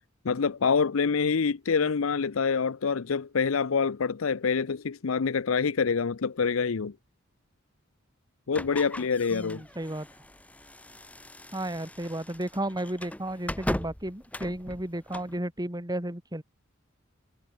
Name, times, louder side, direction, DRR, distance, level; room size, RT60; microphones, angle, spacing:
voice 1, 0.2-6.9 8.5-9.6, left 5 dB, 75° left, 0.6 m, -26 dB
sound 1, 8.5-15.4, left 1 dB, 5° left, 2.0 m, -39 dB
voice 2, 9.3-10.1 11.5-16.4, right 1 dB, 20° right, 3.1 m, -33 dB
head